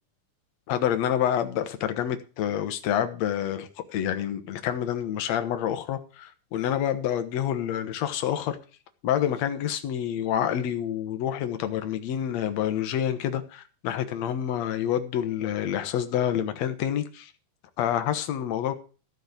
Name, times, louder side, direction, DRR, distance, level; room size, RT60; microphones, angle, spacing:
voice 1, 0.7-8.6 9.0-17.3 17.8-18.7, left 10 dB, 60° left, 2.1 m, -28 dB
14.5 x 5.2 x 8.2 m
omnidirectional pair, 3.8 m